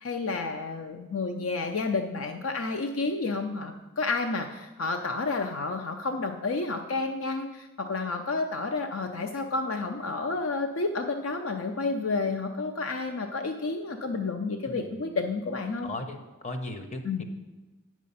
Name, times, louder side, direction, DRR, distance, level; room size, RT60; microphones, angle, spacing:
voice 1, 0.0-15.9 17.0-17.2, left 3 dB, 70° left, 5 dB, 0.5 m, -30 dB
voice 2, 14.6-15.2 15.8-16.2 16.4-17.2, left 2 dB, 35° left, 7 dB, 0.8 m, -37 dB
8.5 x 6.2 x 5.5 m, 1.1 s
head